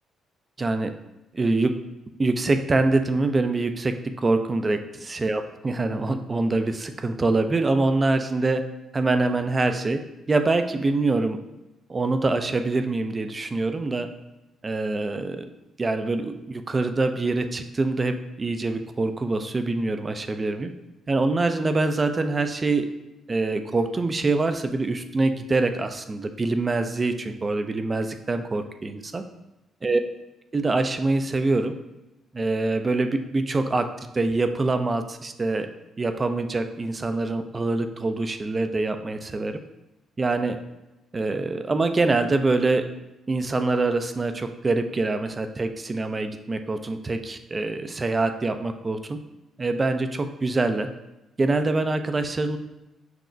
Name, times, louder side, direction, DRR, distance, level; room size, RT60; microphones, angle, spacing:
voice 1, 0.6-0.9 1.3-1.7 2.2-3.9 4.2-8.6 8.9-10.0 10.3-11.4 11.9-14.1 14.6-15.5 15.8-20.7 21.1-22.9 23.3-29.2 29.8-30.0 30.5-31.7 32.3-33.9 34.1-35.7 36.0-39.5 40.2-40.6 41.1-42.8 43.3-49.2 49.6-50.9 51.4-52.6, right 3 dB, 30° right, 8 dB, 0.3 m, -24 dB
5.8 x 2.0 x 2.5 m, 0.97 s
cardioid pair, 90°, 0 cm